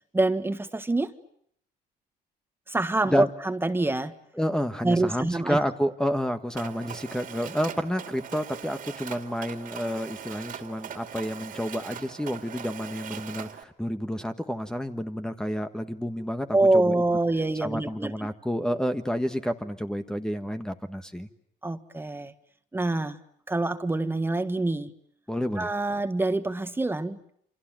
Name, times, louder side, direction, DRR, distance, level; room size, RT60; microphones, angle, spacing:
voice 1, 0.1-1.1 2.7-4.1 4.8-5.6 16.5-18.3 21.6-22.3 22.7-23.2 23.5-24.9 25.6-27.2, right 2 dB, 15° right, 10 dB, 1.6 m, -25 dB
voice 2, 4.4-17.0 17.6-21.3 25.3-25.7, equal, 5° left, 8 dB, 1.4 m, -30 dB
Mechanisms, 6.5-13.6, right 8 dB, 55° right, 2.6 m, -40 dB
28.5 x 26.5 x 7.6 m, 0.69 s
cardioid pair, 110°, 17 cm